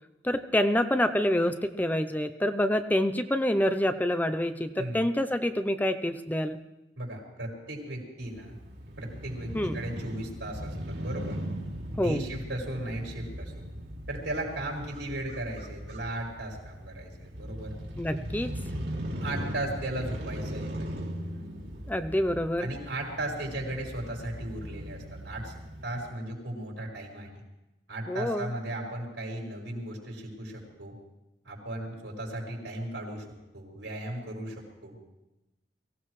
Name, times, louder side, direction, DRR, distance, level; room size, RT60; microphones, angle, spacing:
voice 1, 0.2-6.6 9.5-9.8 12.0-12.2 18.0-18.5 21.9-22.7 28.1-28.5, left 1 dB, 10° left, 9 dB, 0.6 m, -27 dB
voice 2, 4.8-5.1 7.0-8.6 9.0-11.4 11.9-13.7 14.1-17.7 19.2-20.8 22.6-25.5 25.8-27.3 27.9-30.9 31.5-33.3 33.5-34.9, right 1 dB, 85° right, -1 dB, 5.3 m, -36 dB
Crow / Motorcycle, 8.2-26.1, equal, 70° right, 2.8 m, -39 dB
23.0 x 16.0 x 3.2 m, 0.96 s
head